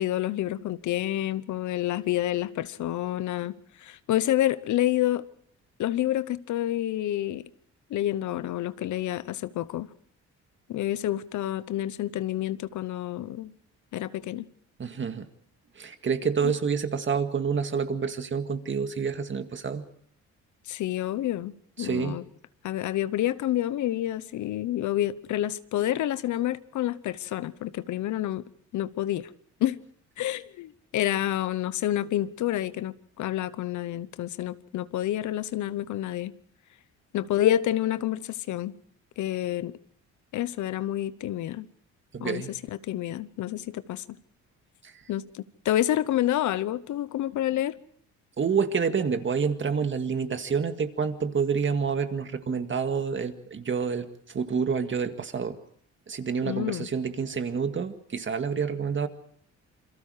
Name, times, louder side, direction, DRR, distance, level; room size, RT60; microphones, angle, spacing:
voice 1, 0.0-3.5 3.8-5.2 5.8-7.5 7.9-9.9 10.7-13.5 13.9-14.4 16.4-16.5 20.7-22.2 22.6-28.4 28.7-29.3 29.6-29.8 30.2-36.3 37.1-38.7 39.2-39.7 40.3-41.7 42.2-44.0 45.1-47.8 56.5-56.9, left 13 dB, 75° left, 0.9 m, -28 dB
voice 2, 14.8-15.3 15.8-19.8 21.8-22.2 42.1-42.5 44.8-44.9 48.4-55.6 56.1-59.1, right 6 dB, 40° right, 2.0 m, -28 dB
28.0 x 23.0 x 4.9 m
cardioid pair, 90°, 30 cm